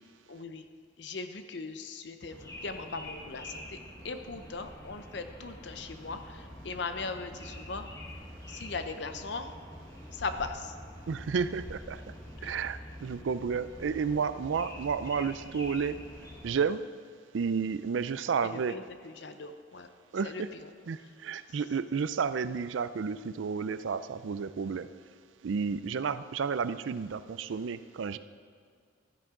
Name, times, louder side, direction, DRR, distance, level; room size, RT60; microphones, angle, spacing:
voice 1, 0.3-0.6 1.0-3.8 4.0-7.9 8.5-9.5 10.1-10.8 12.4-12.6 18.4-19.9 20.2-20.7 21.0-21.1 21.5-21.6, left 4 dB, 65° left, 8 dB, 0.7 m, -39 dB
sound 1, 2.3-16.6, left 1 dB, 20° left, 1.4 m, -46 dB
voice 2, 11.1-12.0 12.4-16.0 16.4-16.8 17.3-18.7 20.1-20.5 20.9-24.9 25.4-28.2, right 6 dB, 80° right, 14 dB, 0.4 m, -31 dB
12.5 x 10.5 x 3.8 m, 2.2 s
head